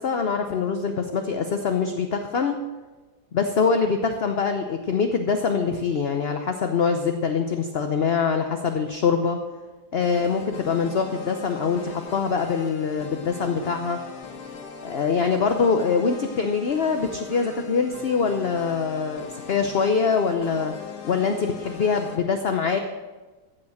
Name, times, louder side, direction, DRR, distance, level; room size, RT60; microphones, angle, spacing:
voice 1, 0.0-2.6 3.3-9.4 9.9-14.0 14.8-20.7 21.0-22.8, left 5 dB, 50° left, 6 dB, 0.8 m, -24 dB
sound 1, 10.0-22.2, left 5 dB, 85° left, 1.9 m, -40 dB
14.5 x 6.4 x 7.7 m, 1.2 s
omnidirectional pair, 1.7 m